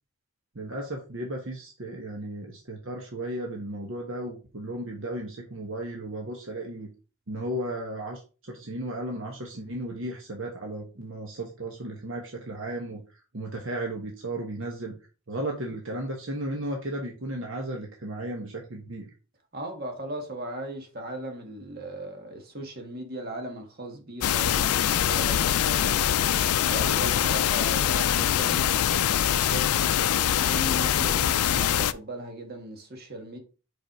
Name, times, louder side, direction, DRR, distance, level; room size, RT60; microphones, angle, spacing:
voice 1, 0.5-6.9 7.3-8.2 8.5-13.0 13.3-14.9 15.3-19.1, right 1 dB, 60° right, 1.2 m, -34 dB
voice 2, 19.5-26.2 26.7-29.7 30.4-33.4, right 1 dB, 45° right, 1.7 m, -38 dB
sound 1, 24.2-31.9, left 10 dB, 85° left, 0.4 m, -23 dB
5.3 x 4.9 x 4.7 m
head